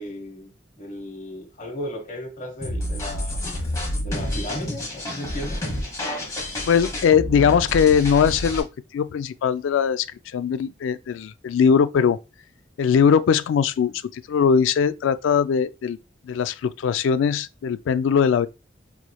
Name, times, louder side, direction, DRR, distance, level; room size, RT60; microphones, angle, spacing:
voice 1, 0.0-3.4 4.0-5.6, equal, 40° left, 1.2 m, -35 dB
sound 1, 2.6-8.6, left 1 dB, 20° left, 1.2 m, -29 dB
voice 2, 6.6-8.7 8.9-10.0 10.3-12.2 12.8-16.0 16.3-18.5, left 7 dB, 85° left, 0.3 m, -20 dB
4.2 x 3.1 x 2.2 m
head